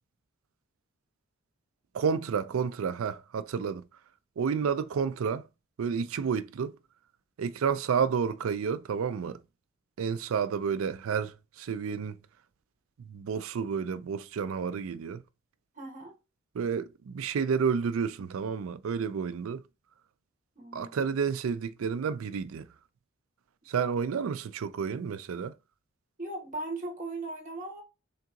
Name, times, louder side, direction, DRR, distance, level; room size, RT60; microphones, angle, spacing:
voice 1, 1.9-3.8 4.4-5.5 5.8-6.7 7.4-9.4 10.0-12.2 13.0-15.2 16.5-19.6 20.7-22.7 23.7-25.5, right 6 dB, 85° right, 0.4 m, -30 dB
voice 2, 15.8-16.1 20.6-20.9 23.7-23.9 26.2-27.8, right 2 dB, 40° right, 1.0 m, -38 dB
3.6 x 2.8 x 3.6 m
head